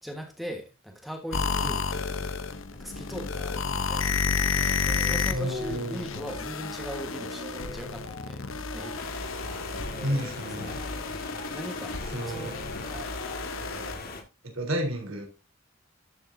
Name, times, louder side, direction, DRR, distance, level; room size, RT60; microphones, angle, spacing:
voice 1, 0.0-4.1 4.5-10.8 11.5-12.6 12.8-13.1, equal, ahead, 1.4 m, -41 dB
sound 1, 1.3-14.0, left 5 dB, 70° left, 0.8 m, -31 dB
sound 2, 3.7-3.9 4.3-14.1, right 1 dB, 45° right, 1.8 m, -47 dB
voice 2, 5.3-6.0 10.0-10.8 12.1-12.5 14.4-15.3, equal, 75° right, 3.6 m, -31 dB
sound 3, 8.9-14.2, left 3 dB, 45° left, 1.8 m, -40 dB
13.0 x 6.6 x 2.7 m
head